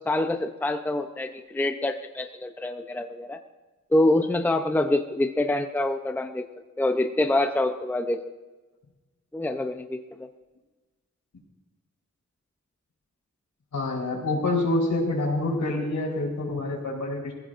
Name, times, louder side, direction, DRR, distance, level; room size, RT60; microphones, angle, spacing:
voice 1, 0.1-3.4 3.9-6.5 6.8-8.2 9.3-10.3, left 1 dB, 5° left, 6 dB, 0.6 m, -26 dB
voice 2, 13.7-17.3, left 2 dB, 80° left, -2 dB, 4.2 m, -27 dB
22.5 x 15.5 x 2.6 m, 1.2 s
wide cardioid pair, 145°, 30 cm